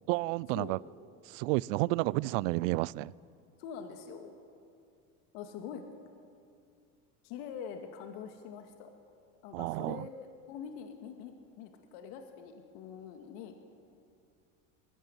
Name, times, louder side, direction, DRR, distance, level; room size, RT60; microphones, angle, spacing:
voice 1, 0.1-0.8 1.2-3.1 9.5-10.1, right 21 dB, 75° right, 24 dB, 0.5 m, -31 dB
voice 2, 3.6-4.3 5.3-5.9 7.2-8.9 9.4-10.1 10.5-13.6, left 7 dB, 70° left, 5 dB, 2.1 m, -44 dB
21.5 x 15.5 x 9.7 m, 2.4 s
supercardioid pair, 95°, 39 cm